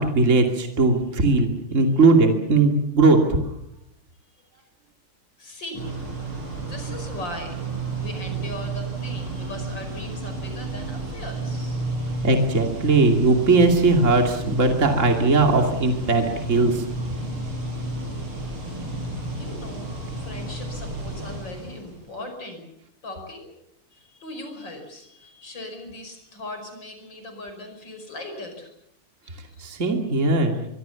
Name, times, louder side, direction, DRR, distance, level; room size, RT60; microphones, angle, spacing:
voice 1, 0.0-3.2 12.2-16.8 29.6-30.7, right 3 dB, 35° right, 3 dB, 2.9 m, -19 dB
voice 2, 5.4-6.0 6.6-7.6 8.0-12.0 19.3-22.6 23.0-23.5 23.9-28.7 29.2-29.7, left 1 dB, 55° left, 5 dB, 6.1 m, -39 dB
sound 1, 5.7-22.1, right 2 dB, 75° right, 6.8 m, -32 dB
24.5 x 23.5 x 7.1 m, 0.81 s
omnidirectional pair, 2.4 m